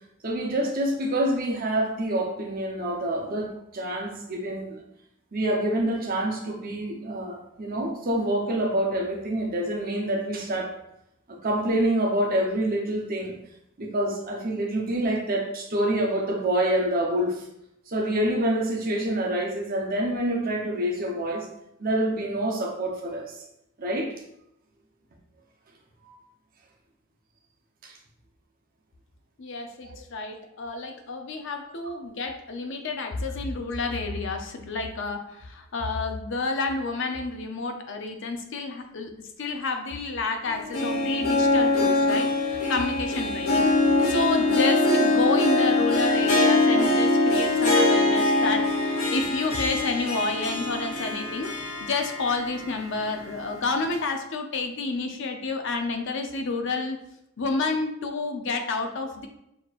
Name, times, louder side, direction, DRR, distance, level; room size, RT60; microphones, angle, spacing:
voice 1, 0.2-4.8 5.3-10.8 11.3-13.3 13.8-17.4 17.9-21.5 21.8-23.4 23.8-24.1 27.8-27.9, right 1 dB, 45° right, 1 dB, 0.8 m, -27 dB
voice 2, 29.4-39.1 39.4-57.0 57.4-59.3, left 3 dB, 60° left, 5 dB, 0.6 m, -30 dB
Harp, 40.5-52.6 53.0-53.1 53.9-54.0, left 2 dB, 80° left, 1.1 m, -23 dB
6.4 x 3.0 x 2.4 m, 0.80 s
head